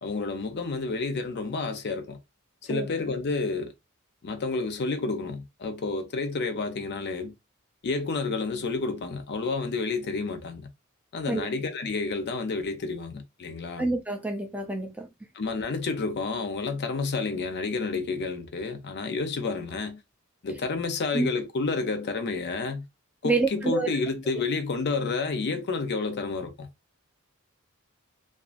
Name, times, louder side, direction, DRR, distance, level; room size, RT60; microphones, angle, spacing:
voice 1, 0.0-2.2 2.6-3.7 4.2-7.3 7.8-10.7 11.1-13.9 15.3-20.0 20.4-22.8 23.2-26.7, left 4 dB, 50° left, 0.5 m, -30 dB
voice 2, 13.8-15.1 21.1-21.3 23.2-23.9, right 3 dB, 5° right, 0.4 m, -27 dB
2.4 x 2.4 x 2.4 m
head